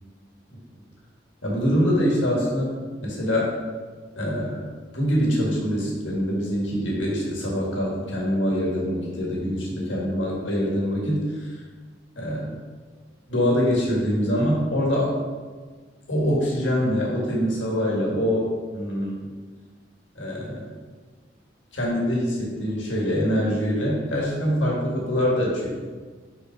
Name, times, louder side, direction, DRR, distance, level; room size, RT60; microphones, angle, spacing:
voice 1, 1.4-2.7 3.0-3.5 4.1-4.6 4.9-11.5 12.2-12.6 13.3-15.1 16.1-18.5 18.7-19.2 20.1-20.6 21.7-25.7, equal, 85° left, -3 dB, 1.7 m, -24 dB
5.3 x 4.2 x 4.6 m, 1.4 s
head